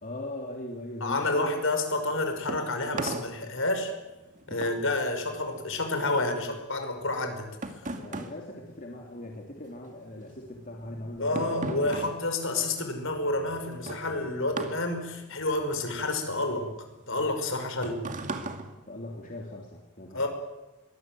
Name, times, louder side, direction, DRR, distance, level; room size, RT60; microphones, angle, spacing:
voice 1, 0.0-1.6 7.9-11.9 18.9-20.3, left 1 dB, 40° left, 0 dB, 3.3 m, -40 dB
voice 2, 1.0-3.9 4.5-7.5 11.2-16.7 17.1-18.0 20.1-20.3, left 2 dB, 65° left, 6 dB, 5.7 m, -29 dB
sound 1, 2.0-9.6 9.9-19.6, right 2 dB, 35° right, 2.3 m, -39 dB
23.0 x 20.5 x 9.4 m, 1.0 s
head